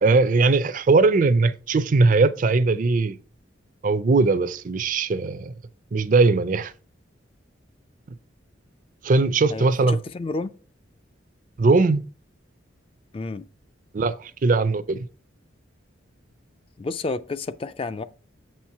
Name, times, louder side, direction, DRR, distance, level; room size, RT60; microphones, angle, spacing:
voice 1, 0.0-3.2 3.8-5.5 5.9-6.7 9.0-10.0 11.6-12.0 13.9-15.1, right 3 dB, 40° right, 0.4 m, -20 dB
voice 2, 9.5-10.5 13.1-13.4 16.8-18.0, left 3 dB, 30° left, 0.3 m, -30 dB
7.7 x 4.4 x 4.7 m
head